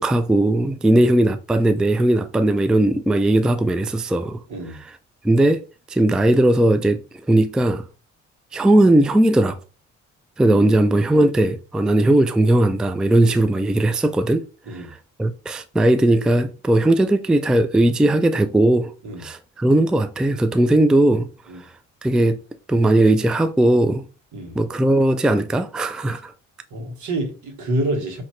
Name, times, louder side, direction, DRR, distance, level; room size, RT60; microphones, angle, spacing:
voice 1, 0.0-4.4 5.2-5.6 5.9-7.0 7.3-7.8 8.5-9.6 10.4-14.4 14.7-18.9 19.2-21.3 22.0-22.4 22.7-24.0 24.6-26.3, right 1 dB, 5° right, 0.3 m, -18 dB
voice 2, 26.7-28.2, right 1 dB, 75° right, 1.5 m, -28 dB
5.4 x 2.9 x 3.1 m
cardioid pair, 90°, 30 cm